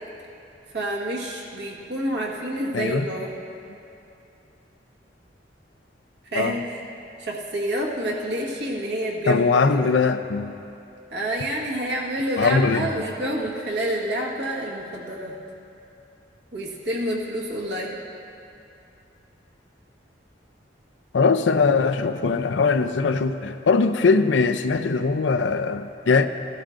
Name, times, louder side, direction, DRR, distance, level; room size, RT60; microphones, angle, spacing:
voice 1, 0.7-3.3 6.3-6.6 7.2-9.9 11.1-15.4 16.5-18.0, right 1 dB, 70° right, -2 dB, 1.5 m, -28 dB
voice 2, 2.7-3.1 6.4-6.5 9.3-10.5 12.4-12.9 21.1-26.3, left 4 dB, 90° left, 9 dB, 0.5 m, -21 dB
15.0 x 12.5 x 2.5 m, 2.6 s
head